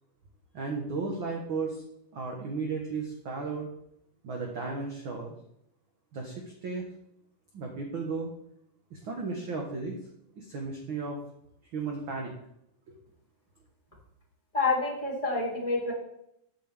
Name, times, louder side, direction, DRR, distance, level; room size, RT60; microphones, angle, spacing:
voice 1, 0.5-1.8 2.1-3.7 4.2-5.3 6.1-6.9 7.5-8.3 8.9-10.0 10.3-11.2 11.7-12.3, right 4 dB, 55° right, 1 dB, 1.5 m, -34 dB
voice 2, 14.5-15.9, left 3 dB, 10° left, -6 dB, 3.5 m, -28 dB
10.0 x 9.1 x 3.5 m, 0.75 s
omnidirectional pair, 3.5 m